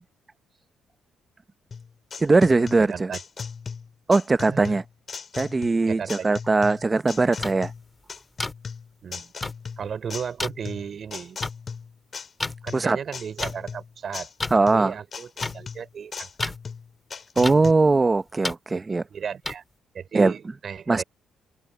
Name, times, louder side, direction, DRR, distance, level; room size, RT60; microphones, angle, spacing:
sound 1, 1.7-17.7, left 5 dB, 45° left, 5.2 m, -37 dB
voice 1, 2.2-3.1 4.1-4.8 5.4-7.7 12.7-13.0 14.5-14.9 17.4-19.0 20.1-20.3 20.9-21.0, right 3 dB, 25° right, 0.7 m, -20 dB
voice 2, 2.8-3.2 4.5-4.8 5.9-6.4 9.0-9.3 9.8-11.4 12.6-16.3 18.9-19.6 19.9-21.0, right 7 dB, 50° right, 4.6 m, -35 dB
sound 2, 7.4-7.5 8.4-8.5 9.4-9.5 10.4-10.5 11.4-11.5 12.4-12.5 13.4-13.5 14.4-14.5 15.4-15.5 16.4-16.6 17.4-17.5 18.4-18.5 19.4-19.5, left 2 dB, 20° left, 2.2 m, -29 dB
cardioid pair, 90°, 0 cm